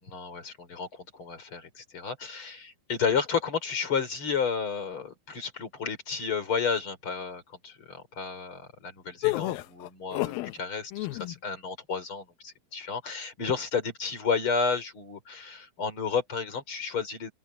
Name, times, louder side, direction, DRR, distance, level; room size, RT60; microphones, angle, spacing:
voice 1, 0.0-17.3, left 5 dB, 35° left, 4.8 m, -32 dB
sound 1, 9.2-10.5 10.9-11.4, left 20 dB, 90° left, 2.6 m, -30 dB
omnidirectional pair, 4.1 m